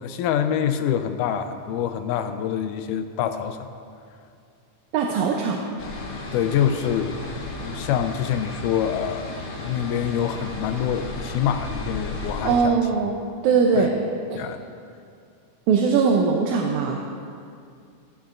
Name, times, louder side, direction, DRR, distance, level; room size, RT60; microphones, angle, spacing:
voice 1, 0.0-3.7 6.3-7.3 7.6-12.8 13.8-13.9 14.4-14.6, left 9 dB, 85° left, 8 dB, 2.0 m, -26 dB
voice 2, 4.9-5.6 12.4-13.1 13.4-13.9 14.3-14.4 15.7-17.0, right 5 dB, 75° right, 1 dB, 1.9 m, -20 dB
sound 1, 5.8-12.7, left 2 dB, 60° left, 1.6 m, -34 dB
16.0 x 9.5 x 2.5 m, 2.3 s
omnidirectional pair, 3.7 m